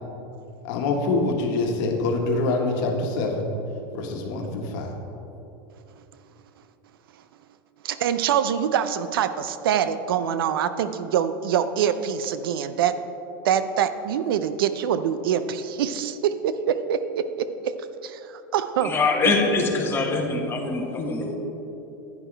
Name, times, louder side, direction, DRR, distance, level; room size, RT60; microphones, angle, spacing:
voice 1, 0.6-3.5 3.9-4.9, left 3 dB, 60° left, 2 dB, 1.5 m, -25 dB
voice 2, 7.8-12.9 13.4-17.7 18.0-18.2 18.5-18.9, right 9 dB, 80° right, 11 dB, 0.5 m, -24 dB
voice 3, 18.8-21.3, left 3 dB, 20° left, -1 dB, 1.6 m, -23 dB
11.0 x 9.6 x 3.3 m, 2.9 s
supercardioid pair, 115°, 12 cm